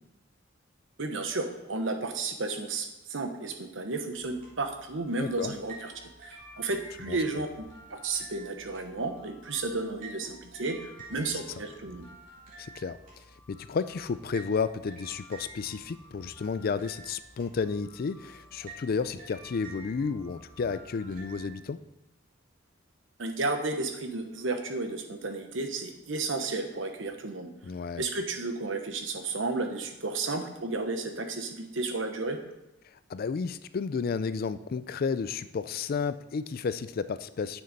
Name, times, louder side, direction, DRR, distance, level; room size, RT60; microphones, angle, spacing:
voice 1, 1.0-7.6 7.9-12.1 23.2-27.5 27.9-32.4, right 3 dB, 70° right, 6 dB, 1.0 m, -33 dB
sound 1, 4.2-21.4, right 2 dB, 45° right, 2.7 m, -50 dB
voice 2, 5.2-5.5 7.1-7.2 12.6-21.8 27.6-28.0 33.1-37.6, left 5 dB, 50° left, 13 dB, 0.4 m, -32 dB
9.6 x 6.6 x 4.1 m, 0.91 s
head